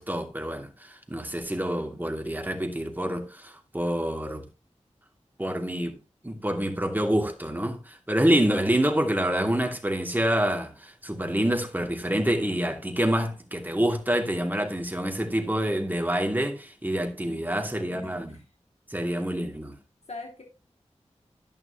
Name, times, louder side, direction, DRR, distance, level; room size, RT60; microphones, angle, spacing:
voice 1, 0.0-4.4 5.4-6.0 6.2-18.4 18.9-19.8, right 1 dB, 15° right, 2.6 m, -27 dB
voice 2, 17.1-18.4 18.9-19.1 20.1-20.4, left 3 dB, 60° left, 2.4 m, -44 dB
11.0 x 9.5 x 3.0 m
cardioid pair, 45°, 12 cm